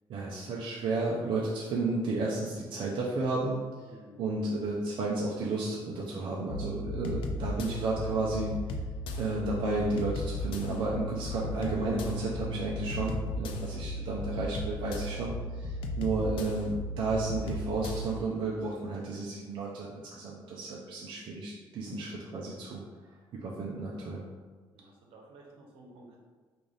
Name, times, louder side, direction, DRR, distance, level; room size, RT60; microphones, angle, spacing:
voice 1, 0.1-3.6 4.2-8.5 9.2-22.8 23.3-24.2, right 3 dB, 60° right, -4 dB, 0.5 m, -32 dB
voice 2, 3.8-4.2 24.7-26.2, right 2 dB, 80° right, -1 dB, 0.9 m, -53 dB
sound 1, 6.5-18.2, left 1 dB, 70° left, 0.4 m, -36 dB
3.2 x 2.5 x 3.8 m, 1.4 s
cardioid pair, 165°, 9 cm